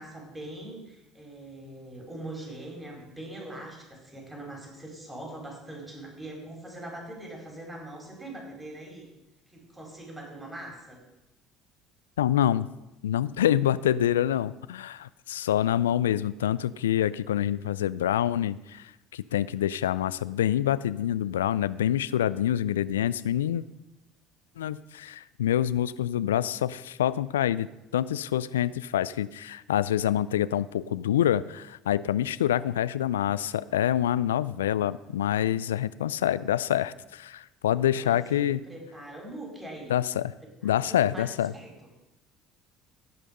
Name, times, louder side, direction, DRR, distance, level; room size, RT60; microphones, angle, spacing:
voice 1, 0.0-9.1 9.5-11.0 37.9-40.0 40.6-41.7, right 1 dB, 15° right, 0 dB, 4.6 m, -42 dB
voice 2, 12.2-12.7 13.0-18.8 19.1-23.6 24.6-27.7 27.9-38.6 39.9-40.3 40.6-41.5, left 11 dB, 85° left, 17 dB, 0.3 m, -26 dB
17.0 x 5.7 x 5.3 m, 0.97 s
hypercardioid pair, 65°, 0 cm